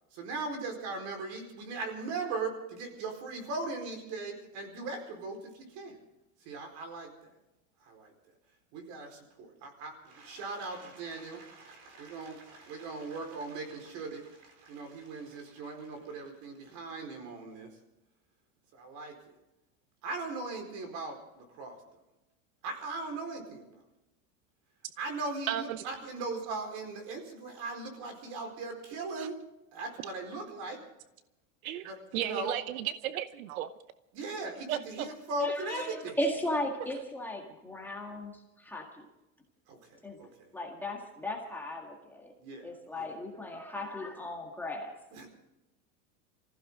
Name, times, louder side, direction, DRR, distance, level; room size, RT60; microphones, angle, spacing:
voice 1, 0.1-6.0 6.4-7.3 7.8-8.1 8.7-17.7 18.7-19.4 20.0-21.8 22.6-23.6 25.0-29.4 29.7-30.8 31.8-32.5 34.1-36.2 39.7-40.5 42.4-43.1 45.1-45.3, right 3 dB, 45° right, 4 dB, 4.6 m, -39 dB
voice 2, 25.5-25.8 29.2-29.3 31.6-33.7 34.7-35.1, right 12 dB, 85° right, 12 dB, 1.0 m, -34 dB
voice 3, 35.4-38.3 38.6-39.1 40.0-40.2 40.5-42.3 42.6-45.0, left 1 dB, 5° left, 0 dB, 1.8 m, -36 dB
25.0 x 15.5 x 3.7 m, 0.96 s
supercardioid pair, 165°, 41 cm